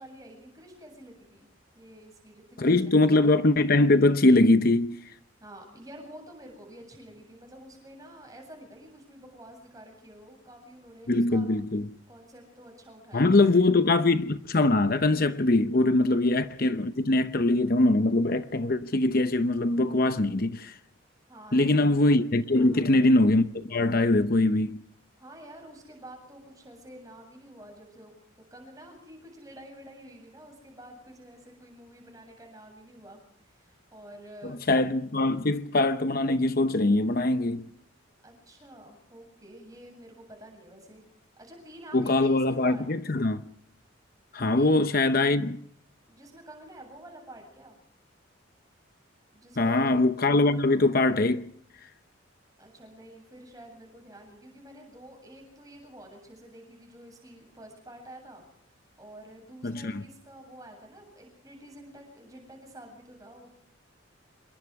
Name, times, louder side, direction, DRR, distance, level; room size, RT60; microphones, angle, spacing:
voice 1, 0.0-1.5 1.7-3.2 5.4-11.5 12.1-13.5 16.0-16.2 21.3-21.8 22.6-22.9 25.2-28.1 28.5-33.2 33.5-34.6 38.2-41.1 41.4-42.9 44.4-44.7 46.1-47.8 49.3-49.9 52.6-58.4 59.0-63.6, right 1 dB, 15° right, 7.8 m, -49 dB
voice 2, 2.6-5.0 11.1-11.8 13.1-20.8 21.5-24.8 34.4-37.7 41.9-43.4 44.3-45.6 49.6-51.4 59.6-60.0, left 2 dB, 45° left, 0.8 m, -22 dB
27.0 x 22.5 x 4.8 m
head